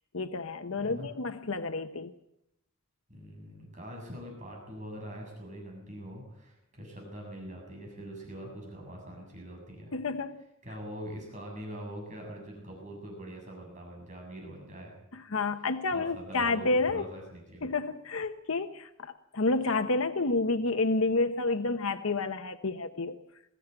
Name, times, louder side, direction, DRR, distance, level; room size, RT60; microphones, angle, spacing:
voice 1, 0.1-2.1 9.9-10.4 15.1-17.1 17.6-23.2, left 3 dB, 85° left, 9 dB, 1.0 m, -30 dB
voice 2, 0.8-1.1 3.1-9.9 10.6-14.9 15.9-17.7, equal, 35° right, 0 dB, 7.4 m, -43 dB
22.0 x 15.5 x 8.9 m, 0.83 s
head